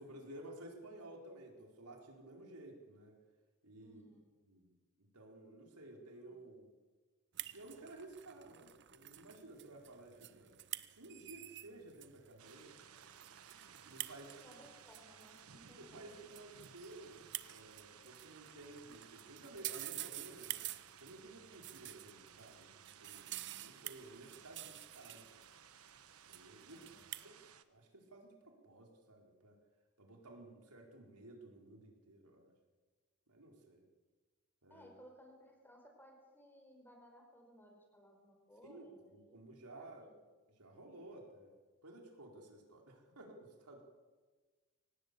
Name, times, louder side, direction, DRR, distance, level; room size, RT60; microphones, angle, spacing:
voice 1, 0.0-3.2 3.6-4.0 4.4-6.7 7.5-10.6 11.0-13.0 13.8-14.4 15.8-20.6 21.0-22.7 23.0-25.5 26.3-26.9 27.2-27.4 27.7-29.6 30.0-32.5 33.3-33.8 34.6-34.9 38.6-40.1 40.6-41.5 41.8-43.8, right 2 dB, 90° right, 1 dB, 4.6 m, -54 dB
voice 2, 3.8-4.2 6.3-6.4 14.4-16.2 24.4-24.5 26.7-27.0 34.7-39.4 39.7-40.2, equal, 10° left, 2 dB, 5.2 m, -61 dB
sound 1, 7.3-27.2, right 14 dB, 50° right, 0.8 m, -50 dB
sound 2, 12.4-27.6, right 8 dB, 75° right, 1.3 m, -59 dB
24.0 x 18.5 x 8.3 m, 1.4 s
head